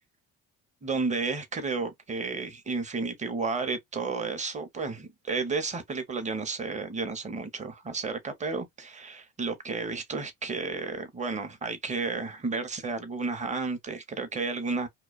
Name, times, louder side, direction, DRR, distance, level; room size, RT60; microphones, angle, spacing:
voice 1, 0.8-14.9, right 4 dB, 20° right, 0.7 m, -32 dB
2.4 x 2.3 x 2.3 m
supercardioid pair, 90°, 33 cm